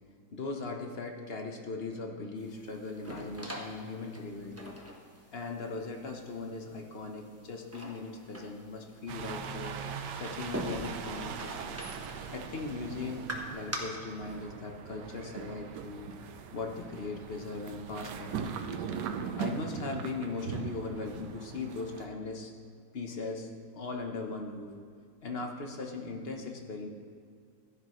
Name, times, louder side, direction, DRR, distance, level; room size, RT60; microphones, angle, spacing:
voice 1, 0.3-4.8 5.3-9.8 10.2-11.8 12.3-16.1 16.5-18.5 19.3-22.5 22.9-24.7 25.2-26.9, left 3 dB, 45° left, 2 dB, 0.9 m, -39 dB
Open door quickly close it slowly, 2.4-13.8, right 1 dB, 10° right, 0.7 m, -45 dB
sound 1, 9.1-22.1, right 6 dB, 75° right, 1.3 m, -40 dB
15.0 x 10.0 x 3.1 m, 2.2 s
omnidirectional pair, 1.9 m